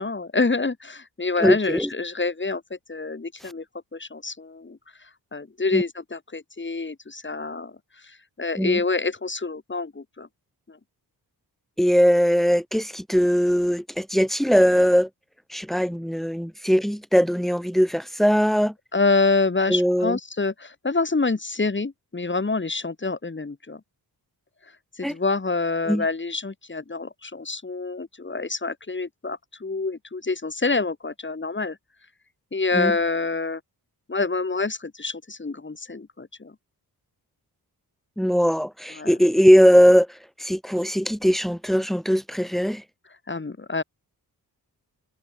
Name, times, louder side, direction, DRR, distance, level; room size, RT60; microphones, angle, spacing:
voice 1, 0.0-3.6 3.9-4.8 5.3-7.7 8.4-10.3 10.7-10.8 18.9-23.8 25.0-31.8 32.5-33.6 34.1-36.5 39.0-39.1 43.3-43.8, left 3 dB, 30° left, 5.2 m, -27 dB
voice 2, 1.4-1.9 5.7-5.8 8.6-8.8 11.8-15.1 15.5-18.7 19.7-20.2 25.0-25.1 25.9-26.0 32.7-33.0 38.2-42.8, equal, ahead, 7.9 m, -20 dB
wide cardioid pair, 100°, 39 cm